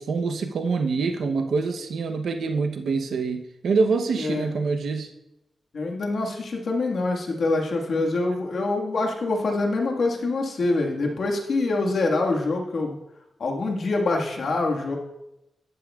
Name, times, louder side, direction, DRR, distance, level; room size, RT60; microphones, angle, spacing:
voice 1, 0.0-5.1, right 4 dB, 80° right, 5 dB, 0.8 m, -25 dB
voice 2, 5.7-13.0 13.4-15.0, left 2 dB, 65° left, 1 dB, 1.6 m, -25 dB
12.0 x 11.5 x 2.4 m, 0.90 s
wide cardioid pair, 125°, 0 cm